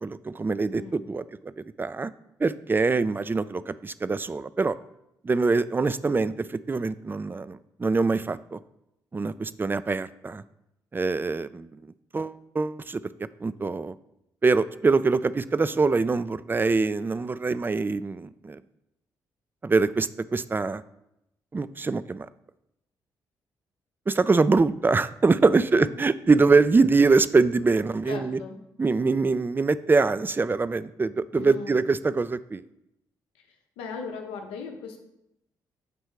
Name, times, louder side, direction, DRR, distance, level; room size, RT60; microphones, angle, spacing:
voice 1, 0.0-2.1 2.4-4.8 5.2-8.6 9.1-10.4 10.9-11.7 12.1-13.0 13.4-13.9 14.4-18.6 19.6-20.8 21.5-22.3 24.1-28.4 28.8-32.6, right 4 dB, 20° right, 16 dB, 0.3 m, -24 dB
voice 2, 25.5-25.9 28.1-28.6 31.3-31.7 33.8-35.0, left 5 dB, 80° left, 3 dB, 0.7 m, -38 dB
6.7 x 3.2 x 4.7 m, 0.83 s
hypercardioid pair, 45°, 9 cm